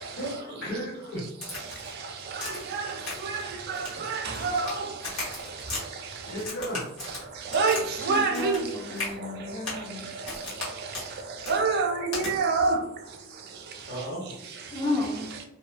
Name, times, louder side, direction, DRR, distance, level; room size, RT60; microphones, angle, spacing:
voice 1, 0.1-1.2 6.2-6.8 13.9-14.4, equal, 55° left, 0.9 m, -34 dB
Crack, 1.4-1.9 2.4-2.7 3.0-3.4 3.7-4.8 5.0-5.8 6.4-8.7 9.0-9.1 9.6-9.9 10.3-10.7 10.9-11.1 11.4-11.6 12.1-12.3, left 3 dB, 90° left, 1.2 m, -36 dB
voice 2, 2.3-2.9 3.2-4.9 7.5-8.6 11.5-12.8, right 4 dB, 50° right, 0.4 m, -26 dB
voice 3, 8.1-10.0 14.7-15.3, left 2 dB, 20° left, 0.3 m, -32 dB
2.7 x 2.0 x 2.4 m
head